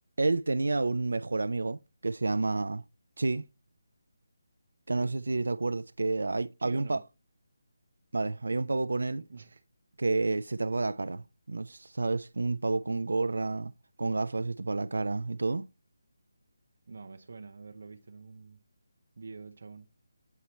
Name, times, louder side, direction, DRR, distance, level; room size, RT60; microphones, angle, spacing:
voice 1, 0.2-2.8 3.2-3.4 4.9-7.0 8.1-9.2 10.0-13.7 14.0-15.7, right 3 dB, 85° right, 0.3 m, -30 dB
voice 2, 6.6-7.0 9.3-9.6 16.9-18.6 19.2-19.9, right 4 dB, 45° right, 0.6 m, -47 dB
8.2 x 4.4 x 3.1 m
hypercardioid pair, 180°, 0 cm